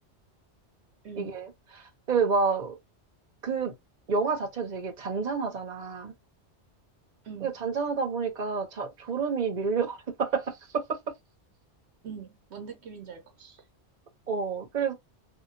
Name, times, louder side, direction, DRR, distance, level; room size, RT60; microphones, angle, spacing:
voice 1, 1.2-2.8 3.4-3.7 4.1-6.1 7.4-11.0 14.3-14.9, right 5 dB, 40° right, 1.0 m, -29 dB
voice 2, 12.0-13.6, right 6 dB, 70° right, 1.0 m, -42 dB
2.8 x 2.6 x 2.6 m
omnidirectional pair, 1.2 m